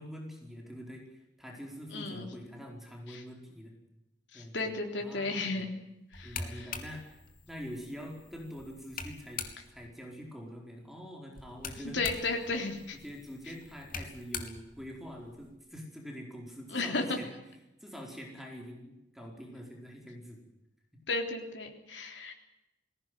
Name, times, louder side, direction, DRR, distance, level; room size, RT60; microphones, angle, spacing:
voice 1, 0.0-3.8 4.3-4.7 5.0-5.6 6.2-7.2 7.5-12.1 12.4-12.7 13.0-17.4 17.8-20.4, equal, ahead, 0 dB, 4.6 m, -45 dB
voice 2, 1.9-2.3 3.1-3.2 4.3-5.7 6.1-6.7 11.8-13.0 16.7-17.2 21.1-22.3, left 3 dB, 85° left, 3 dB, 3.8 m, -34 dB
sound 1, 6.1-9.9 11.3-15.5, left 5 dB, 50° left, 3.0 m, -44 dB
20.5 x 17.0 x 9.3 m, 0.92 s
head